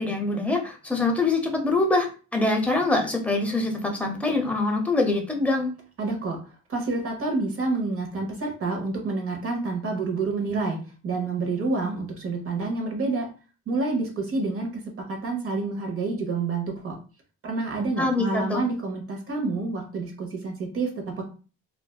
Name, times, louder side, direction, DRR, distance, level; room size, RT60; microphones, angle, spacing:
voice 1, 0.0-5.7 18.0-18.6, left 2 dB, 5° left, 2 dB, 0.7 m, -24 dB
voice 2, 6.0-6.4 6.7-13.3 13.7-14.7 15.1-17.0 17.4-21.2, right 3 dB, 50° right, 1 dB, 0.9 m, -28 dB
2.5 x 2.2 x 2.3 m, 0.35 s
cardioid pair, 90°, 30 cm